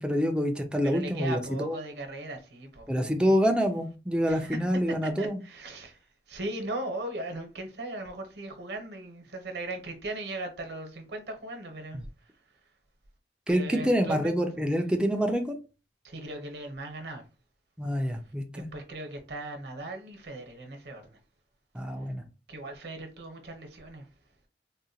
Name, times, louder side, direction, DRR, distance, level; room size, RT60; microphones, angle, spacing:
voice 1, 0.0-1.8 2.9-5.4 13.5-15.6 17.8-18.7 21.7-22.2, equal, 5° right, 0.4 m, -27 dB
voice 2, 0.8-2.9 4.3-4.6 4.9-12.0 13.5-14.3 16.0-17.2 18.7-21.2 22.5-24.1, right 2 dB, 70° right, 0.9 m, -38 dB
3.7 x 2.1 x 2.7 m
head